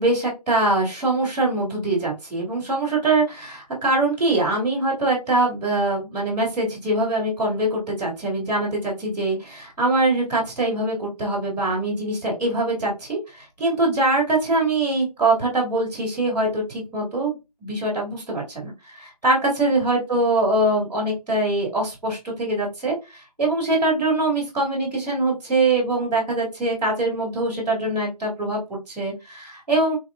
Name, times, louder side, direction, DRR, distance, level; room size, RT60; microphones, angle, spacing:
voice 1, 0.0-30.0, right 2 dB, ahead, -22 dB, 0.8 m, -23 dB
3.9 x 2.3 x 2.3 m, 0.24 s
figure-of-eight pair, 175°, 21 cm